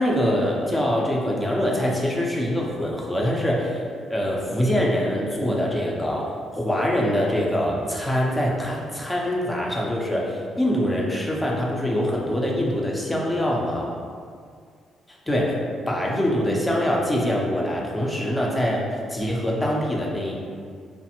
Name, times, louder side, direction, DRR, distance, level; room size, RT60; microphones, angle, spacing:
voice 1, 0.0-3.8 4.1-14.0 15.3-15.6 15.9-20.3, equal, 15° left, -2 dB, 0.5 m, -24 dB
3.2 x 2.0 x 2.8 m, 2.1 s
cardioid pair, 90°, 0 cm